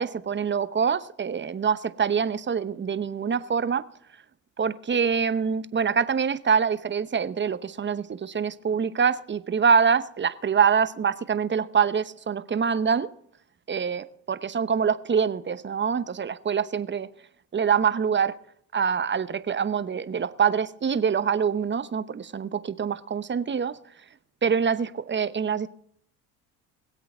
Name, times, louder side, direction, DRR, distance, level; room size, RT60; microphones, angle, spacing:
voice 1, 0.0-3.8 4.6-13.1 13.7-17.1 17.5-18.3 18.7-23.7 24.4-25.7, right 6 dB, 25° right, 13 dB, 0.9 m, -25 dB
21.5 x 8.2 x 4.4 m, 0.66 s
hypercardioid pair, 75°, 47 cm